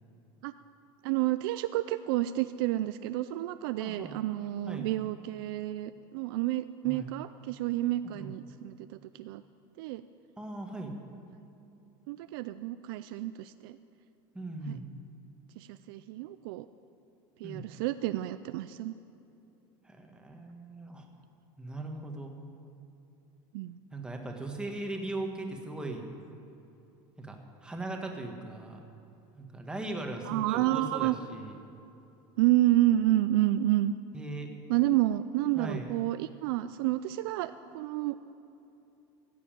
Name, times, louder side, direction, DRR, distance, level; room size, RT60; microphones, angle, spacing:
voice 1, 1.0-9.4 9.8-10.0 12.1-13.8 15.6-16.7 17.4-18.9 23.5-23.8 30.2-31.1 32.4-33.9 34.7-38.3, right 15 dB, 85° right, 11 dB, 0.4 m, -29 dB
voice 2, 3.8-4.2 4.7-4.9 6.8-7.1 8.0-8.3 10.4-10.9 14.3-14.8 17.4-17.6 19.8-21.1 21.6-22.3 23.9-26.1 27.2-28.8 29.4-31.6 34.1-34.5 35.5-35.9, right 2 dB, 5° right, 2 dB, 1.4 m, -39 dB
15.5 x 7.0 x 8.9 m, 2.8 s
cardioid pair, 145°, 12 cm